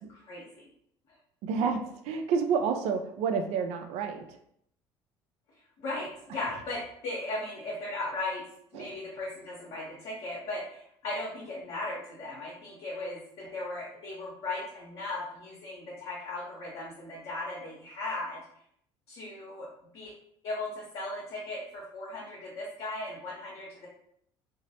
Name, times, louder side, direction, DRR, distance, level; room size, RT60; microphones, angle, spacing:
voice 1, 0.1-0.6 1.1-1.2 5.8-8.5 8.7-18.4 19.1-19.7 19.9-20.1 20.4-23.9, left 2 dB, 50° left, -5 dB, 0.8 m, -37 dB
voice 2, 1.4-1.8 2.0-4.2 8.7-8.9, right 6 dB, 55° right, 6 dB, 0.4 m, -29 dB
2.9 x 2.0 x 2.8 m, 0.70 s
figure-of-eight pair, 55°, 13 cm